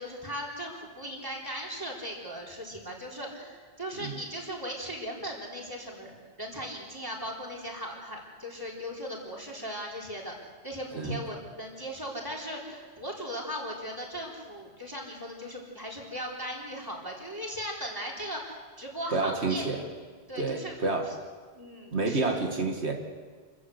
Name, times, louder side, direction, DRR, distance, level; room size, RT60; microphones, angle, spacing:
voice 1, 0.0-10.4 10.6-19.7 20.3-20.8 21.1-21.2 21.5-22.2, equal, 20° right, -2 dB, 4.2 m, -38 dB
voice 2, 19.1-19.8 20.4-21.1 21.9-22.9, right 3 dB, 85° right, 2 dB, 2.2 m, -29 dB
28.5 x 15.0 x 8.1 m, 1.6 s
omnidirectional pair, 1.1 m